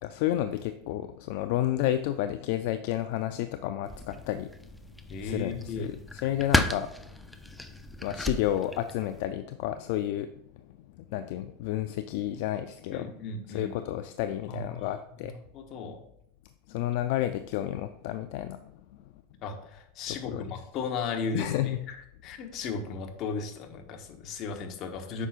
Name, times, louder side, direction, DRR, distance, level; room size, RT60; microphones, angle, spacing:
voice 1, 0.0-4.5 5.2-6.9 8.0-10.3 11.1-13.1 13.5-15.3 16.7-18.7 20.1-20.6 21.3-21.8, left 13 dB, 65° left, 10 dB, 0.3 m, -31 dB
sound 1, 3.8-9.2, left 1 dB, 5° left, 0.4 m, -34 dB
voice 2, 5.1-5.9 12.9-13.7 14.5-15.3 15.5-16.0 19.4-21.9 22.2-25.3, left 4 dB, 45° left, 5 dB, 1.0 m, -36 dB
8.0 x 5.8 x 2.5 m, 0.77 s
supercardioid pair, 130°, 0 cm